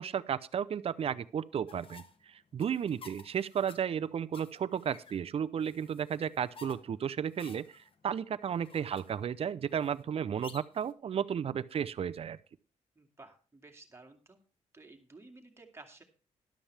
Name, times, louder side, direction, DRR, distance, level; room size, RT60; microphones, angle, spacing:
voice 1, 0.0-12.4, right 8 dB, 50° right, 14 dB, 0.6 m, -34 dB
sound 1, 1.7-10.9, left 4 dB, 45° left, 1.4 m, -55 dB
voice 2, 13.0-14.4 14.7-16.0, right 3 dB, 20° right, 4 dB, 2.3 m, -54 dB
13.0 x 11.5 x 3.4 m, 0.35 s
cardioid pair, 110°, 13 cm